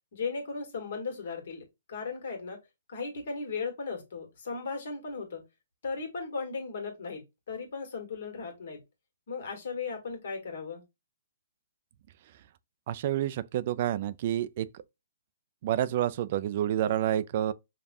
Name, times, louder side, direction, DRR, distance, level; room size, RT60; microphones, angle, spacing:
voice 1, 0.1-2.6 2.9-5.4 5.8-8.8 9.3-10.8, left 4 dB, 60° left, 1.6 m, -36 dB
voice 2, 12.9-14.7 15.6-17.5, right 11 dB, 45° right, 0.3 m, -28 dB
5.2 x 2.3 x 2.6 m
hypercardioid pair, 140°, 0 cm